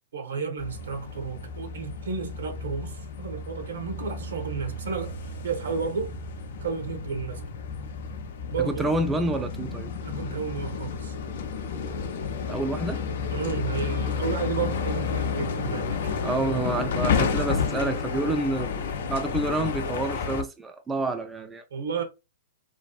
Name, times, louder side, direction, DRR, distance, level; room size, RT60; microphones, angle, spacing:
voice 1, 0.1-6.1 6.6-7.5 8.5-8.9 10.0-11.1 13.3-16.2 21.7-22.0, right 5 dB, 75° right, 0.8 m, -32 dB
sound 1, 0.6-20.4, left 5 dB, 65° left, 0.4 m, -31 dB
voice 2, 8.7-9.9 12.4-13.0 16.2-21.6, right 2 dB, 10° right, 0.3 m, -28 dB
2.6 x 2.4 x 2.3 m
hypercardioid pair, 120°, 0 cm